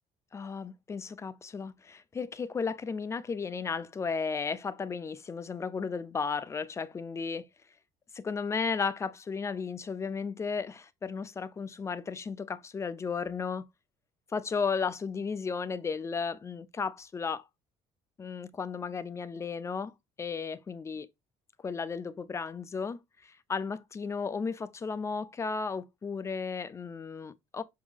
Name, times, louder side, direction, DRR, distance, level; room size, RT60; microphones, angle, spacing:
voice 1, 0.3-7.5 8.1-13.7 14.3-17.4 18.2-21.1 21.6-27.6, left 5 dB, 20° left, 0.5 m, -34 dB
6.0 x 5.4 x 3.3 m
cardioid pair, 150°, 14 cm